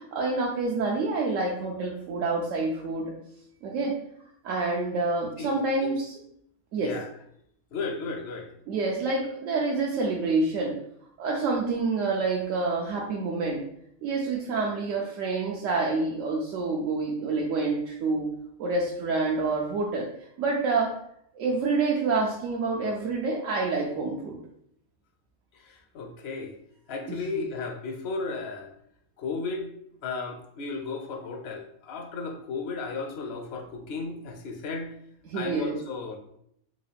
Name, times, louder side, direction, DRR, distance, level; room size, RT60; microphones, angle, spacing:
voice 1, 0.0-3.1 3.6-3.9 4.4-6.1 6.7-6.9 8.7-10.7 11.2-13.6 14.0-18.3 18.6-20.1 20.4-20.9 21.3-24.4 27.1-27.4 35.3-35.8, right 3 dB, 80° right, -2 dB, 0.9 m, -27 dB
voice 2, 5.4-5.9 6.8-7.1 7.7-8.5 25.5-26.6 26.9-28.7 29.2-29.7 30.0-34.9 35.3-36.2, left 4 dB, 65° left, 4 dB, 0.7 m, -34 dB
3.7 x 2.3 x 3.3 m, 0.72 s
omnidirectional pair, 1.3 m